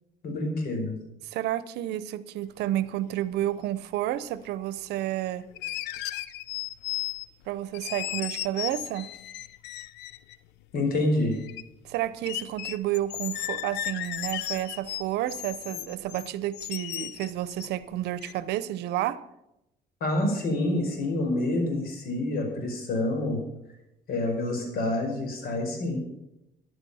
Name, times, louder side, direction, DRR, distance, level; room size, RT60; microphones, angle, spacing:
voice 1, 0.2-1.0 10.7-11.4 20.0-23.4 24.1-26.0, left 1 dB, 60° left, 3 dB, 5.1 m, -27 dB
voice 2, 1.2-5.5 7.5-9.1 11.8-19.2, right 13 dB, 80° right, 15 dB, 0.8 m, -30 dB
sound 1, 3.4-3.5 5.5-7.4 7.7-10.4 10.9-11.6 11.9-12.0 12.3-17.8 18.2-18.3, left 14 dB, 85° left, 0.7 m, -35 dB
14.0 x 11.0 x 5.7 m, 0.87 s
cardioid pair, 110°, 17 cm